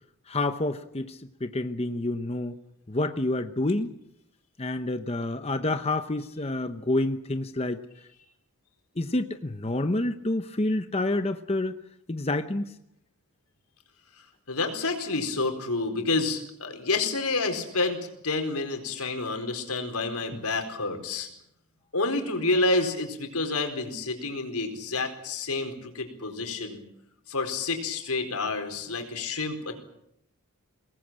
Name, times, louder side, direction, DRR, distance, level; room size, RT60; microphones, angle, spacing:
voice 1, 0.3-2.6 2.9-3.9 4.6-7.8 9.0-11.8 12.1-12.7, left 2 dB, 25° left, 9 dB, 0.9 m, -28 dB
voice 2, 14.5-21.3 21.9-26.8 27.3-29.8, left 3 dB, 85° left, 5 dB, 4.4 m, -29 dB
24.0 x 19.5 x 8.8 m, 0.80 s
head